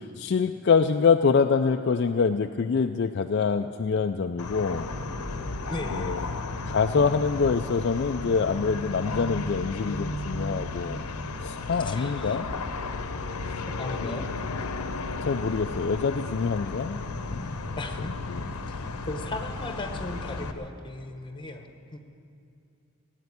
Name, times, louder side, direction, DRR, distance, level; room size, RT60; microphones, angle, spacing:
voice 1, 0.0-4.9 5.9-6.3 6.7-11.1 11.4-12.5 14.0-14.2 15.3-17.0 17.3-17.5 18.3-18.4, left 5 dB, 50° left, 7 dB, 0.3 m, -25 dB
sound 1, 4.4-20.5, left 4 dB, 90° left, 0.8 m, -35 dB
sound 2, 4.7-20.2, right 1 dB, 60° right, 1.7 m, -40 dB
voice 2, 5.7-6.3 11.8-12.4 13.7-14.3 17.8-18.1 19.1-22.0, left 2 dB, 20° left, 5 dB, 1.0 m, -37 dB
17.0 x 8.2 x 9.7 m, 2.6 s
head